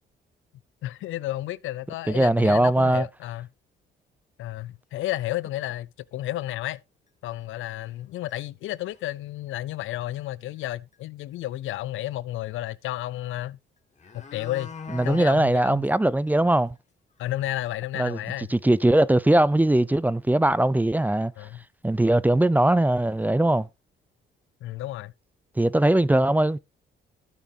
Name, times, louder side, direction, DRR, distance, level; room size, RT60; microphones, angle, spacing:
voice 1, 0.8-3.5 4.4-6.8 7.2-13.6 14.1-14.7 15.0-15.9 17.2-18.5 21.4-21.6 24.6-25.1, left 15 dB, 80° left, 0.6 m, -32 dB
voice 2, 2.1-3.1 14.9-16.7 17.9-18.2 18.5-21.3 21.8-23.7 25.6-26.6, right 1 dB, 10° right, 0.5 m, -20 dB
sound 1, 5.0-5.1 5.6-5.7 6.0-6.1 7.1-7.2 7.7-8.0 8.3-8.4 8.7-9.1 10.6-10.7 10.9-11.0 13.3-13.4 13.8-15.4 15.8-15.9 16.3-16.4 16.8-16.9 17.2-17.3 20.1-20.2 20.5-20.7 21.4-21.5 22.0-22.2 22.4-23.2 23.6-23.7, left 5 dB, 35° left, 2.1 m, -43 dB
12.0 x 9.1 x 2.8 m
cardioid pair, 90°, 20 cm